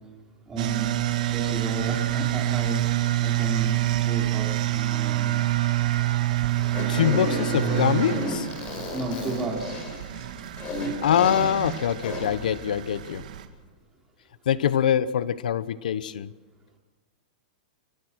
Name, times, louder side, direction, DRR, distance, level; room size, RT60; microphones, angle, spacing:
voice 1, 0.5-1.0 1.3-2.8 3.2-3.7 4.0-5.3 8.9-9.7, right 2 dB, 15° right, -1 dB, 4.6 m, -32 dB
sound 1, 0.6-13.5, right 15 dB, 70° right, 2.1 m, -27 dB
Fart, 6.6-12.4, left 1 dB, 25° left, 4.7 m, -33 dB
voice 2, 6.9-8.5 11.0-13.2 14.5-16.3, left 9 dB, 85° left, 16 dB, 0.9 m, -24 dB
29.5 x 14.0 x 6.3 m, 1.2 s
supercardioid pair, 160°, 4 cm